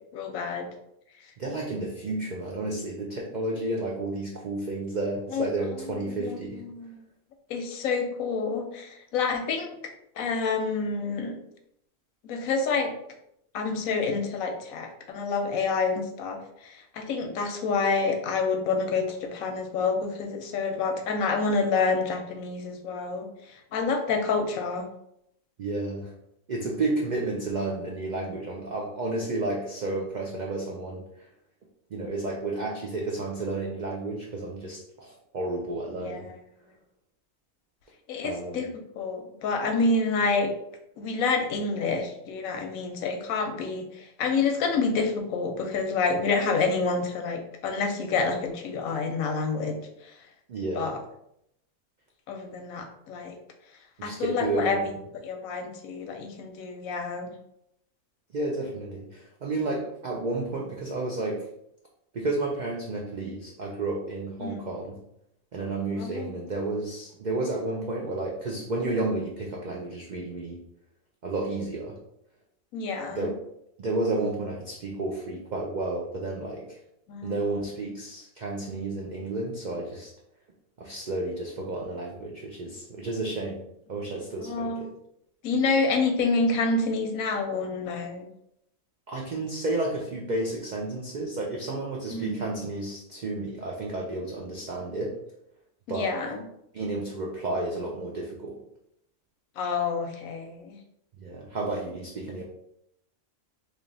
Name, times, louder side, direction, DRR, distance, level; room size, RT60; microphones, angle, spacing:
voice 1, 0.1-0.7 5.3-5.4 5.8-7.0 7.5-9.7 10.2-11.4 12.3-12.9 13.5-24.9 35.9-36.3 38.1-38.7 39.0-40.5 41.0-49.8 50.7-51.0 52.3-53.4 54.0-54.9 55.2-57.3 64.4-64.7 66.0-66.4 72.7-73.3 77.1-77.5 84.4-84.8 85.4-88.3 92.1-92.5 95.9-96.5 99.6-100.8, left 4 dB, 90° left, 5 dB, 1.1 m, -28 dB
voice 2, 1.4-6.7 25.6-26.1 26.5-31.3 31.9-36.3 38.2-38.6 50.5-50.9 54.0-55.0 58.3-61.5 62.1-65.0 65.5-70.6 71.2-72.0 73.1-73.3 73.8-76.8 77.2-80.1 80.8-84.9 89.1-95.2 95.9-96.1 96.7-98.6 101.2-102.4, right 2 dB, 90° right, -1 dB, 0.4 m, -31 dB
3.2 x 2.5 x 3.8 m, 0.77 s
omnidirectional pair, 1.4 m